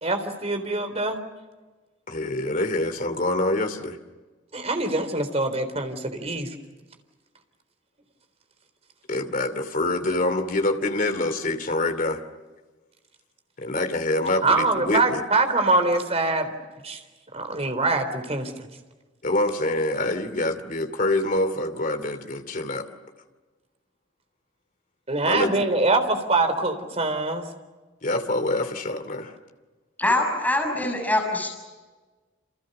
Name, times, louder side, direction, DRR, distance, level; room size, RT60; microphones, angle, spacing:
voice 1, 0.0-1.2 4.5-6.5 14.4-16.6 16.8-17.0 17.3-18.7 25.1-27.4, right 2 dB, 35° right, 7 dB, 3.8 m, -24 dB
voice 2, 2.1-4.0 9.1-12.2 13.6-15.2 19.2-22.9 25.2-25.5 28.0-29.3, left 2 dB, 45° left, 8 dB, 2.7 m, -25 dB
voice 3, 30.0-31.5, left 1 dB, 10° left, 1 dB, 6.8 m, -23 dB
29.5 x 28.0 x 6.7 m, 1.3 s
head